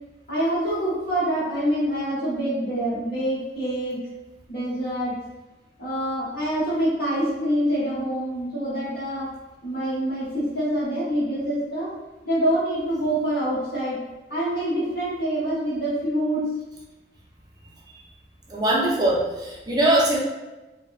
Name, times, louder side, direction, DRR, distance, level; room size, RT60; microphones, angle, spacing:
voice 1, 0.3-4.0 4.5-5.1 5.8-9.3 9.6-11.9 12.2-14.0 14.3-16.4, right 1 dB, 55° left, -8 dB, 0.8 m, -25 dB
voice 2, 18.5-20.2, right 1 dB, 20° right, -3 dB, 0.4 m, -21 dB
2.9 x 2.0 x 2.3 m, 1.1 s
head